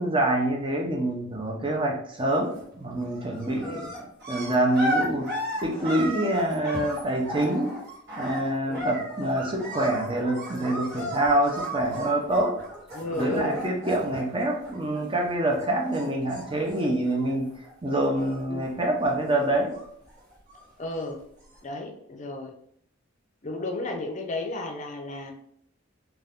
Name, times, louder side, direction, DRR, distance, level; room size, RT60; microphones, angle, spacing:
voice 1, 0.0-7.7 8.2-12.5 13.1-19.7, right 1 dB, 25° right, 0 dB, 0.6 m, -26 dB
sound 1, 2.3-2.7 3.0-15.3 15.6-17.7 18.0-18.7 19.0-20.8 21.5-21.6, equal, 55° right, 1.0 m, -35 dB
voice 2, 12.9-13.6 18.5-18.7 20.8-21.2 21.6-22.5 23.4-25.3, left 2 dB, 35° left, 3 dB, 0.5 m, -33 dB
2.5 x 2.3 x 3.4 m, 0.68 s
head